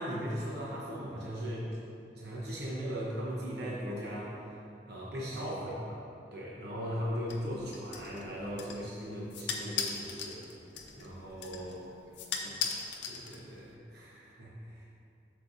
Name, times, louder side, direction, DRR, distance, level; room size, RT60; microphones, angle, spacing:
voice 1, 0.0-1.7 2.1-4.6 4.9-6.0 6.3-10.4 11.0-11.8 12.4-12.6 13.1-14.9, equal, 60° right, -5 dB, 1.0 m, -38 dB
sound 1, 7.3-13.7, left 6 dB, 75° left, 0.7 m, -40 dB
voice 2, 10.1-12.6, right 2 dB, 80° right, -3 dB, 1.2 m, -59 dB
8.4 x 6.7 x 2.7 m, 2.7 s
head